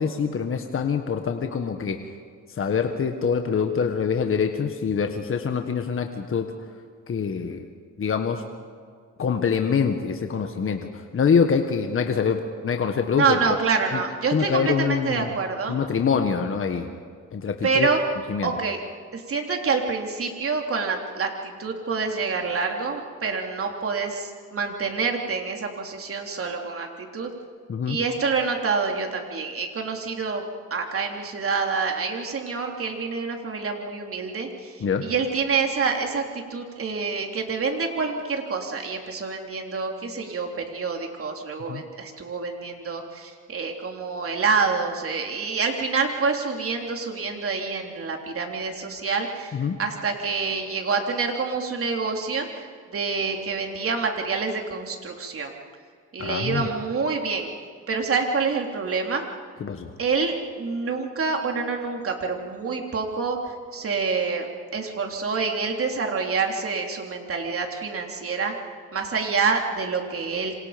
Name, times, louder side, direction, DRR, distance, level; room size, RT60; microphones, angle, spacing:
voice 1, 0.0-2.1 2.5-6.5 7.1-7.7 8.0-8.4 9.2-13.4 13.9-14.0 14.3-15.3 15.7-16.9 17.3-17.9 18.3-18.5 27.7-28.0 34.8-35.1 41.7-41.8 49.5-49.8 56.2-56.7 59.6-59.9, left 6 dB, 45° left, 5 dB, 1.6 m, -25 dB
voice 2, 13.2-15.8 17.6-18.0 18.4-18.8 19.1-27.3 27.9-30.4 30.7-55.5 56.1-57.5 57.9-59.2 60.0-68.5 68.9-70.6, right 4 dB, 45° right, 2 dB, 3.7 m, -27 dB
28.0 x 26.0 x 5.3 m, 2.1 s
cardioid pair, 90°, 30 cm